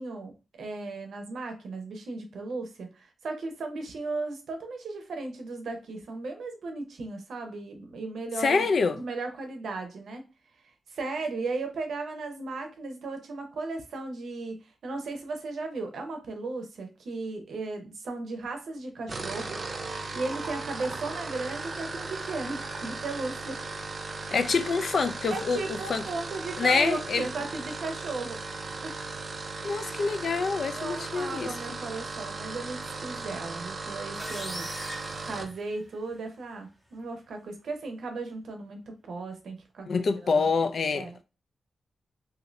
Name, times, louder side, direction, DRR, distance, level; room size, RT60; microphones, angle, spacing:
voice 1, 0.0-8.7 9.0-10.2 10.6-23.6 24.2-24.5 25.3-28.4 28.8-28.9 29.7-30.1 30.8-34.7 35.2-40.5 40.9-41.2, right 3 dB, 75° right, 0.7 m, -36 dB
voice 2, 8.4-9.0 24.3-26.0 26.6-27.3 29.6-31.8 39.9-41.2, left 4 dB, 50° left, 0.3 m, -26 dB
sound 1, 19.0-35.5, right 3 dB, 35° right, 0.3 m, -37 dB
sound 2, 34.2-36.1, equal, 5° left, 0.7 m, -40 dB
2.6 x 2.6 x 3.1 m
wide cardioid pair, 175°, 0 cm